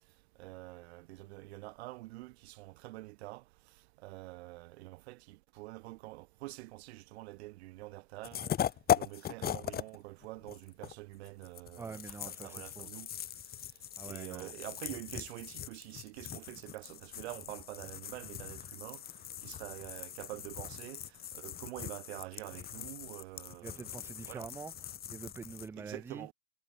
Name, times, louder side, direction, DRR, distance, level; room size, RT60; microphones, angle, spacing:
voice 1, 0.4-3.4 4.0-8.5 8.9-13.1 14.0-19.0 19.4-23.9 24.3-24.5 25.8-26.3, right 20 dB, 45° right, 0.7 m, -46 dB
sound 1, 8.2-10.0 10.2-25.7, left 10 dB, 20° left, 1.3 m, -39 dB
voice 2, 11.8-12.9 14.0-14.5 23.6-24.7 25.1-26.3, right 5 dB, 5° right, 0.5 m, -45 dB
hypercardioid pair, 105°, 45 cm